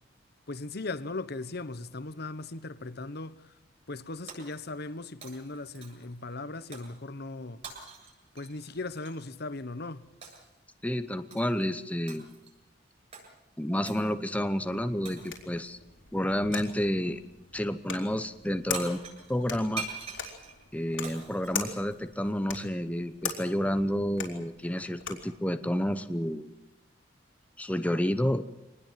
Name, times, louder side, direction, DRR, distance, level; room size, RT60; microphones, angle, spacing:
voice 1, 0.5-3.5 3.9-7.6 8.3-10.1, left 2 dB, 60° left, 1.1 m, -38 dB
Shatter, 4.3-4.9 5.2-6.2 6.7-7.0 7.6-9.2 10.2-10.6 11.3-11.6 12.1-12.6 13.1-13.3 13.9-14.1 15.1-15.6 16.5-16.9 18.4-18.5 18.7-22.3, right 4 dB, 40° right, 8.0 m, -44 dB
voice 2, 10.8-12.2 13.6-15.8 16.1-17.2 17.5-19.0 19.3-19.9 20.7-26.5 27.6-28.4, equal, 10° left, 0.9 m, -30 dB
sound 1, 14.6-25.4, left 6 dB, 85° left, 4.0 m, -41 dB
25.0 x 19.5 x 7.6 m
head